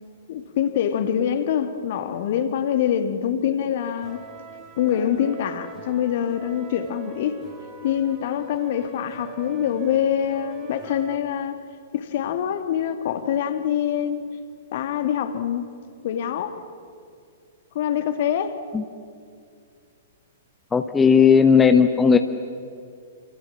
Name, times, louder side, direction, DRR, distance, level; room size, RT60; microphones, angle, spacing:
voice 1, 0.3-4.2 4.8-7.4 7.8-11.6 11.9-14.4 14.7-15.6 16.0-16.6 17.7-18.6, left 9 dB, 50° left, 2.4 m, -25 dB
sound 1, 3.8-11.2, right 5 dB, 25° right, 4.3 m, -43 dB
voice 2, 20.7-22.2, left 6 dB, 10° left, 1.2 m, -15 dB
28.5 x 27.5 x 7.4 m
figure-of-eight pair, 110°, 0 cm